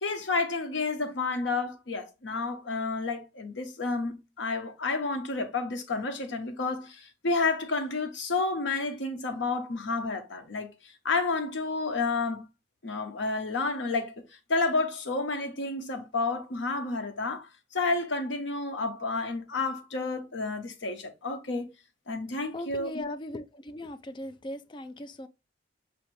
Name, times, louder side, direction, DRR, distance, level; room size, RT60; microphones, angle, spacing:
voice 1, 0.0-10.7 11.0-12.5 12.8-14.1 14.5-21.7 22.1-23.1, left 3 dB, 75° left, 0.7 m, -30 dB
voice 2, 22.5-25.3, left 1 dB, 25° left, 0.3 m, -39 dB
5.6 x 2.6 x 3.1 m
head